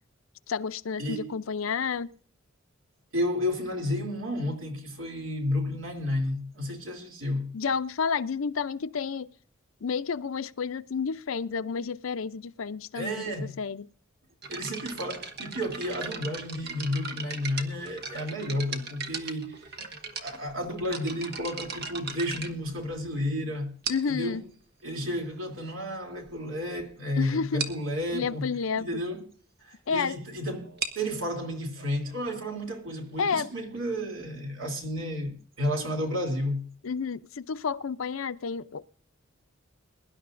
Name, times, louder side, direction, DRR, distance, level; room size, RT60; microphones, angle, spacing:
voice 1, 0.5-2.1 7.5-9.3 9.8-13.9 23.9-24.4 27.2-27.6 28.1-29.0 29.9-30.2 33.2-33.5 36.8-38.8, left 5 dB, 70° left, 0.5 m, -30 dB
voice 2, 1.0-1.3 3.1-7.5 12.9-13.6 14.5-19.8 20.2-23.8 24.1-24.5 24.8-28.5 28.8-29.3 29.6-36.7, left 1 dB, 70° right, 3.0 m, -32 dB
sound 1, 14.4-23.2 23.8-24.3 25.1-25.2 25.8-25.9 26.2-26.4 26.7-26.8 27.1-27.2 27.6-27.9 30.6-34.0, right 4 dB, 50° right, 1.5 m, -38 dB
22.5 x 11.0 x 2.6 m
head